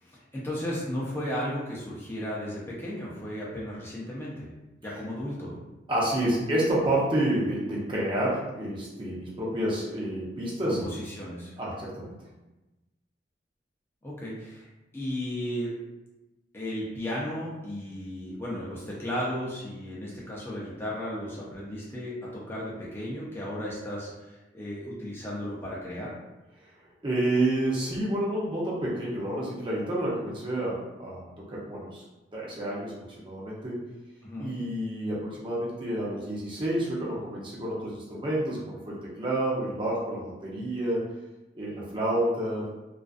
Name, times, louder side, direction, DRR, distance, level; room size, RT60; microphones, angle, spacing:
voice 1, 0.0-4.5 4.8-5.5 10.7-11.5 14.0-14.7 14.9-15.7 16.5-26.1 34.2-34.6, equal, 15° left, -7 dB, 0.5 m, -35 dB
voice 2, 5.9-10.9 11.6-12.1 27.0-32.0 32.3-33.9 34.4-41.0 41.5-42.7, right 1 dB, 30° right, -6 dB, 0.6 m, -29 dB
2.4 x 2.4 x 2.4 m, 1.0 s
head